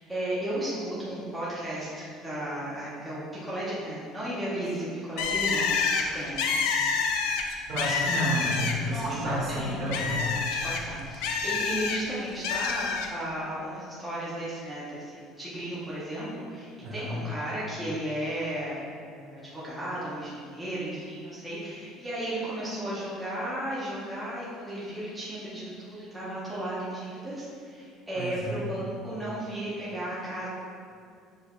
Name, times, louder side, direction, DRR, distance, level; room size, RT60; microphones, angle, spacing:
voice 1, 0.0-6.4 8.9-30.5, right 1 dB, 5° right, -10 dB, 0.7 m, -34 dB
Bird, 5.2-9.0 9.4-12.0 12.4-13.1, left 5 dB, 85° left, 0.4 m, -28 dB
voice 2, 7.7-10.3 16.8-17.1 28.1-28.5, equal, 45° right, -5 dB, 1.2 m, -31 dB
6.8 x 3.2 x 2.4 m, 2.3 s
cardioid pair, 165°, 0 cm